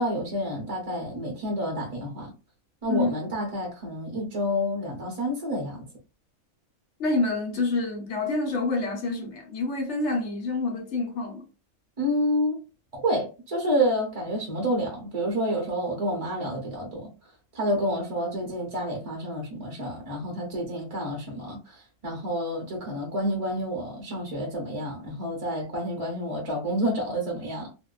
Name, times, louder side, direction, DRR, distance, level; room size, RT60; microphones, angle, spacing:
voice 1, 0.0-2.3 2.8-5.9 12.0-12.6 12.9-17.1 17.5-27.7, equal, 35° right, 0.6 m, -29 dB
voice 2, 7.0-11.5, left 3 dB, 65° left, 1.0 m, -27 dB
2.7 x 2.1 x 2.2 m
omnidirectional pair, 1.3 m